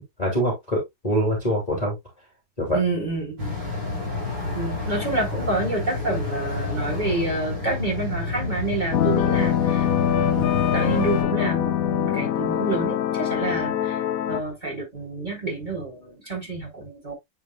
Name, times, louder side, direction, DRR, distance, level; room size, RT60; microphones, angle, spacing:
voice 1, 0.2-1.9 2.6-2.8, equal, 15° left, 2.6 m, -24 dB
voice 2, 2.7-3.5 4.5-9.9 10.1-14.0 14.3-17.1, right 2 dB, 20° right, 3.5 m, -28 dB
sound 1, 3.4-11.2, left 3 dB, 45° right, 4.9 m, -29 dB
sound 2, 8.9-14.4, left 10 dB, 70° left, 0.8 m, -23 dB
9.8 x 4.7 x 2.3 m
omnidirectional pair, 2.4 m